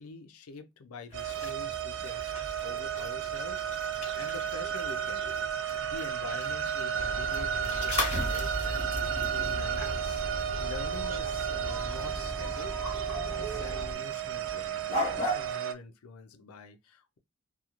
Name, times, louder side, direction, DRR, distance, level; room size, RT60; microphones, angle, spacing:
voice 1, 0.0-2.3 2.6-5.4 5.8-8.8 9.3-10.2 10.6-12.9 13.4-17.2, left 4 dB, 85° left, 0.5 m, -46 dB
Dogs Drinking Water, 1.1-15.5, left 1 dB, 30° left, 0.9 m, -39 dB
sound 1, 1.1-15.7, right 9 dB, 60° right, 0.4 m, -33 dB
sound 2, 6.9-13.9, right 1 dB, 10° right, 0.6 m, -39 dB
2.4 x 2.3 x 2.9 m
head